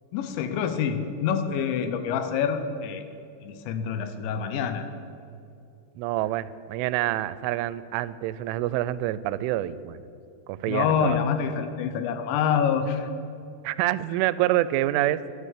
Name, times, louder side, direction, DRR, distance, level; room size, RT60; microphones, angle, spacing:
voice 1, 0.1-3.0 3.4-4.9 10.7-13.1, left 7 dB, 80° left, 9 dB, 3.0 m, -26 dB
voice 2, 6.0-10.0 10.5-11.2 13.6-15.3, right 14 dB, 90° right, 16 dB, 3.1 m, -27 dB
12.0 x 12.0 x 8.2 m, 2.6 s
omnidirectional pair, 5.5 m